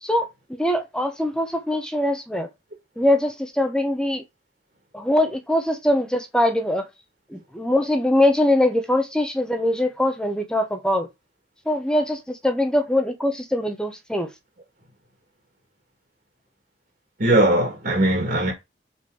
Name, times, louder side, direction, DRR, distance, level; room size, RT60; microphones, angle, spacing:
voice 1, 0.0-2.5 3.0-4.2 4.9-6.9 7.3-11.1 11.7-14.3, left 1 dB, 5° left, 1.0 m, -22 dB
voice 2, 17.2-18.5, right 1 dB, 55° right, 2.0 m, -19 dB
5.1 x 4.4 x 4.9 m
head